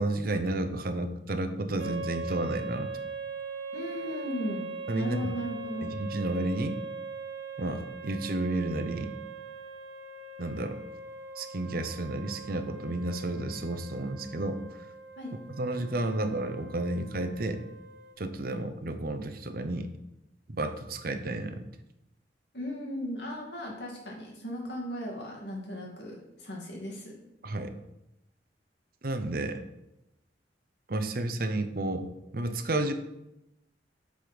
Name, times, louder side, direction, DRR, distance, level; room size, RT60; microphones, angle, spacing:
voice 1, 0.0-3.0 4.9-5.3 5.8-6.8 7.6-9.1 10.4-10.8 11.4-14.6 15.5-17.6 18.2-19.9 20.5-21.7 27.4-27.7 29.0-29.6 30.9-32.9, right 2 dB, 55° right, 8 dB, 0.8 m, -31 dB
sound 1, 1.8-18.1, right 4 dB, 90° right, 0.9 m, -41 dB
voice 2, 3.7-4.7 4.9-5.9 15.2-15.3 22.5-27.1, equal, 70° left, -1 dB, 2.5 m, -36 dB
8.4 x 5.1 x 6.1 m, 0.87 s
head